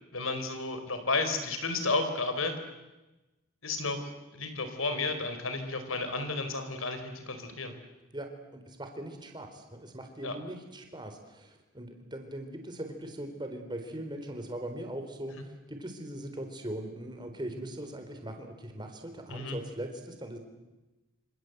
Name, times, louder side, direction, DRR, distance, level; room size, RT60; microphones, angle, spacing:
voice 1, 0.1-2.6 3.6-7.7 10.2-10.4 19.3-19.6, left 3 dB, 85° left, 8 dB, 4.4 m, -32 dB
voice 2, 8.1-20.4, right 1 dB, 20° right, 5 dB, 4.0 m, -40 dB
27.0 x 27.0 x 8.0 m, 1.1 s
head